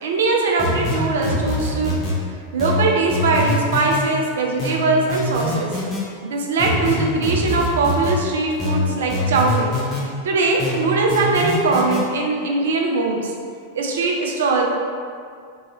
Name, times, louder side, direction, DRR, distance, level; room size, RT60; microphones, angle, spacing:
voice 1, 0.0-1.9 2.5-5.7 6.2-9.7 10.2-13.3 13.7-14.7, right 3 dB, 60° right, 0 dB, 0.4 m, -21 dB
sound 1, 0.6-2.2 2.6-4.0 4.6-6.0 6.6-8.2 8.6-10.0 10.6-12.0, left 1 dB, 25° left, 1.0 m, -24 dB
2.7 x 2.7 x 2.8 m, 2.2 s
figure-of-eight pair, 90°, 0 cm